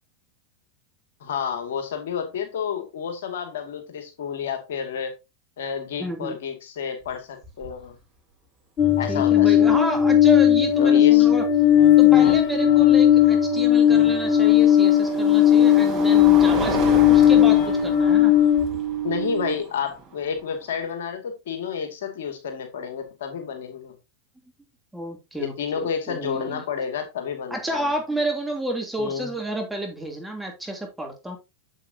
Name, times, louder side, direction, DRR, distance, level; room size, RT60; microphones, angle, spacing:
voice 1, 1.2-5.1 5.6-8.0 9.0-9.7 10.8-11.3 19.0-23.9 25.3-27.9 29.0-29.3, left 7 dB, 70° left, 2.2 m, -30 dB
voice 2, 6.0-6.4 9.1-11.4 12.0-18.3 24.9-26.6 27.5-31.4, right 1 dB, 5° right, 2.9 m, -30 dB
sound 1, 7.0-7.1 7.4-7.9 9.7-9.8 12.8-20.9, right 3 dB, 30° right, 6.1 m, -34 dB
sound 2, 8.8-18.6, left 14 dB, 35° left, 1.8 m, -17 dB
sound 3, 9.6-19.6, right 11 dB, 60° right, 1.3 m, -29 dB
8.2 x 7.7 x 2.8 m
hypercardioid pair, 105°, 0 cm